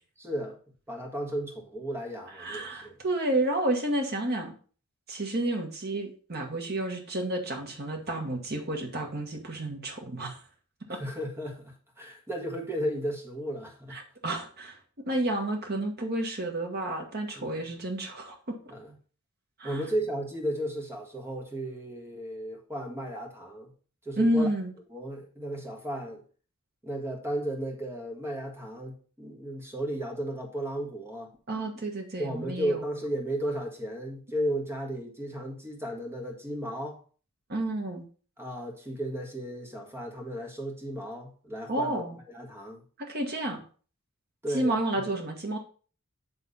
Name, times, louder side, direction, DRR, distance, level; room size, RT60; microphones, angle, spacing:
voice 1, 0.2-0.6 0.9-3.0 10.9-14.0 17.3-17.7 18.7-18.9 19.6-23.7 24.0-24.5 24.9-26.2 26.8-31.3 32.2-37.0 38.4-42.0 42.3-42.8 44.4-45.0, right 1 dB, 10° right, 1.5 m, -34 dB
voice 2, 2.4-4.5 5.1-10.4 10.9-11.0 13.9-14.8 15.1-18.6 19.6-19.8 24.2-24.7 31.5-32.9 37.5-38.0 41.7-42.2 43.0-43.6 44.5-45.6, right 1 dB, 45° right, 1.5 m, -30 dB
8.3 x 3.5 x 5.4 m
head